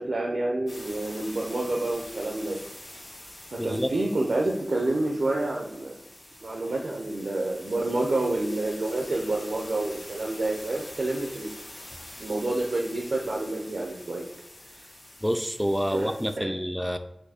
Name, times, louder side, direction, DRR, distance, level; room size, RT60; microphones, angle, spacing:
voice 1, 0.0-2.6 3.5-6.0 6.4-11.5 12.2-14.3 15.9-16.1 16.4-16.5, right 2 dB, 90° right, 0 dB, 0.5 m, -28 dB
sound 1, 0.7-16.4, left 1 dB, 85° left, 1.7 m, -45 dB
voice 2, 3.6-3.9 15.2-17.0, equal, ahead, 8 dB, 0.4 m, -28 dB
4.4 x 2.6 x 4.2 m, 0.81 s
wide cardioid pair, 65°, 0 cm